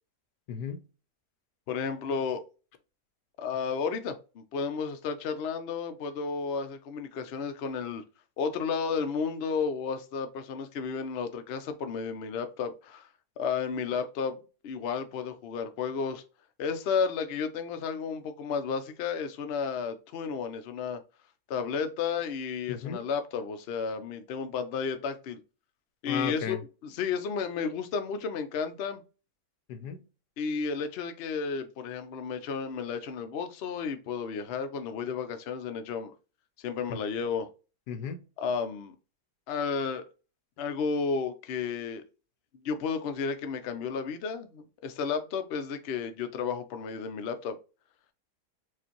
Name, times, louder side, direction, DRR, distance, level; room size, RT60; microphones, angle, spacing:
voice 1, 0.5-0.8 22.7-23.0 26.1-26.6 29.7-30.0 37.9-38.2, left 7 dB, 90° left, 1.3 m, -35 dB
voice 2, 1.7-2.4 3.4-8.0 8.4-13.1 13.4-14.4 14.6-16.2 16.6-21.0 21.5-25.4 26.0-26.6 26.8-29.0 30.4-36.1 36.6-37.5 38.4-38.9 39.5-40.0 40.6-42.0 42.6-47.6, left 5 dB, 60° left, 0.7 m, -32 dB
4.7 x 2.6 x 2.8 m
omnidirectional pair, 1.7 m